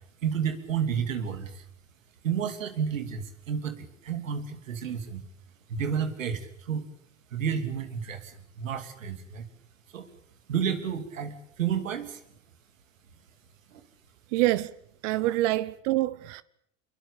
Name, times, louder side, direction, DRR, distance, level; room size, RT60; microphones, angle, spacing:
voice 1, 0.2-1.6 2.2-5.2 5.7-6.8 7.3-9.5 9.9-10.1 10.5-12.2 13.7-13.8, right 7 dB, 90° right, 2.8 m, -31 dB
voice 2, 14.3-14.7 15.0-16.4, right 17 dB, 70° right, 1.0 m, -26 dB
23.5 x 22.5 x 8.4 m
hypercardioid pair, 80°, 38 cm